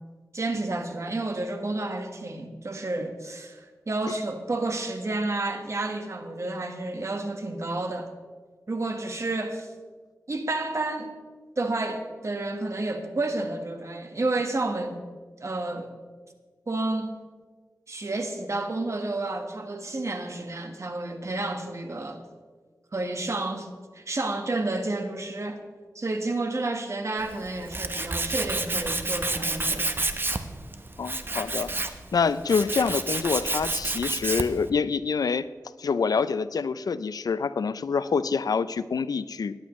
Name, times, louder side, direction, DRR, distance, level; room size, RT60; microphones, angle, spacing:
voice 1, 0.3-8.1 8.7-9.7 10.3-11.1 11.6-15.0 15.4-15.9 16.7-17.1 17.9-22.2 22.9-23.7 23.9-25.6 25.9-30.0, right 2 dB, 50° right, 5 dB, 1.4 m, -30 dB
Tools, 27.2-34.7, right 2 dB, 35° right, 0.9 m, -30 dB
voice 2, 31.0-31.7 32.1-35.5 35.8-39.5, left 5 dB, 80° left, 15 dB, 0.4 m, -26 dB
17.0 x 11.0 x 3.1 m, 1.5 s
wide cardioid pair, 65°, 6 cm